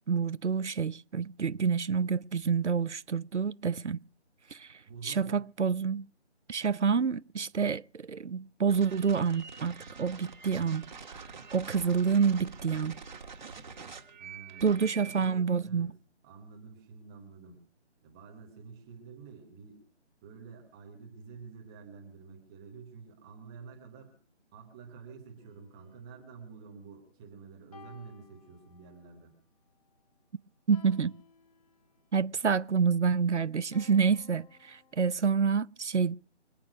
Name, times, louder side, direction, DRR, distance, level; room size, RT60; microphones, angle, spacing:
voice 1, 0.1-4.0 4.5-6.0 6.5-10.9 11.5-13.0 14.6-15.9 30.7-31.2 32.1-36.2, right 6 dB, 75° right, 0.7 m, -28 dB
voice 2, 4.9-5.4 14.2-15.9 16.2-17.6 18.0-19.8 20.2-24.1 24.5-29.3, right 5 dB, 5° right, 0.8 m, -49 dB
sound 1, 8.7-15.3, right 5 dB, 40° right, 1.5 m, -46 dB
sound 2, 25.4-27.1 27.7-29.2 30.7-32.2 33.7-35.2, left 6 dB, 35° left, 2.4 m, -58 dB
25.0 x 8.7 x 6.1 m
figure-of-eight pair, 155°, 35 cm